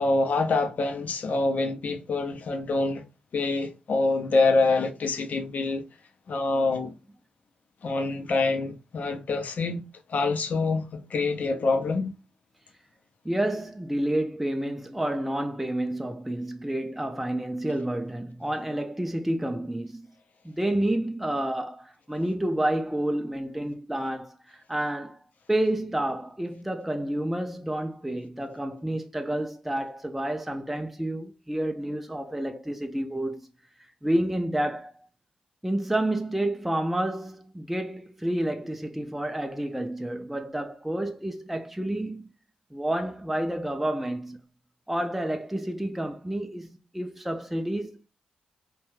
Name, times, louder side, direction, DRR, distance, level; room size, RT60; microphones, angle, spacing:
voice 1, 0.0-3.0 3.3-5.8 6.3-6.9 7.8-9.8 10.1-12.1, left 3 dB, 60° left, 0.5 m, -26 dB
voice 2, 13.2-20.0 20.4-25.2 25.5-33.5 33.8-35.1 35.6-42.3 42.7-44.4 44.9-48.1, right 1 dB, 5° right, 0.4 m, -29 dB
2.3 x 2.2 x 3.1 m
supercardioid pair, 45°, 3 cm